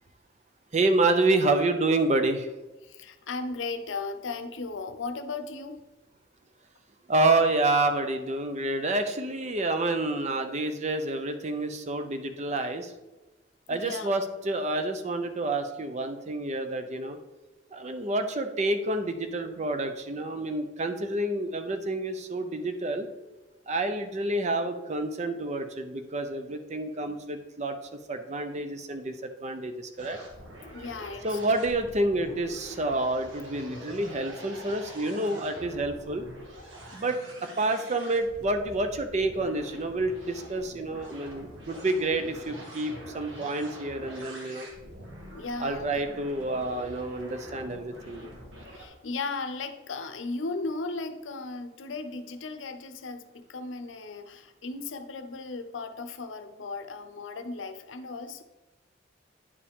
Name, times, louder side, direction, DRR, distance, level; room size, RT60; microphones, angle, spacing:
voice 1, 0.7-2.5 7.1-12.9 13.7-17.2 17.7-23.1 23.7-30.2 31.2-36.3 36.9-44.7 45.6-48.3, right 2 dB, 40° right, 8 dB, 0.6 m, -28 dB
voice 2, 2.8-5.8 13.7-14.1 30.6-31.4 45.3-46.0 48.7-58.4, left 3 dB, 90° left, 9 dB, 0.6 m, -36 dB
sound 1, 30.0-48.9, equal, 90° right, 1.7 m, -45 dB
9.7 x 4.8 x 3.6 m, 1.1 s
head